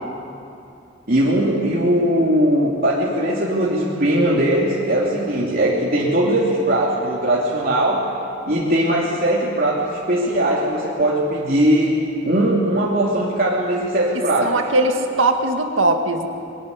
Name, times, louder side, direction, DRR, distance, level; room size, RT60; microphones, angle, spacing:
voice 1, 1.1-8.0 8.4-11.9 12.2-14.6, right 1 dB, 50° right, -5 dB, 3.1 m, -19 dB
voice 2, 14.4-16.3, right 2 dB, 90° right, 4 dB, 2.0 m, -19 dB
22.5 x 18.0 x 9.8 m, 2.6 s
head